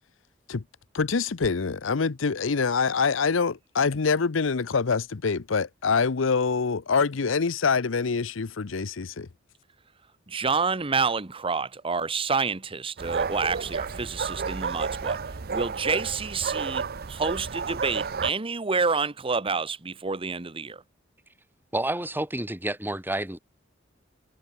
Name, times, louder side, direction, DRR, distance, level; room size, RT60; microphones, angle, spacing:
voice 1, 0.9-9.3, left 5 dB, 85° left, 0.7 m, -25 dB
voice 2, 10.3-15.2 15.5-20.8, right 4 dB, 30° right, 1.0 m, -28 dB
sound 1, 13.0-18.3, right 5 dB, 50° right, 0.7 m, -31 dB
voice 3, 21.7-23.4, right 1 dB, 10° right, 6.1 m, -29 dB
head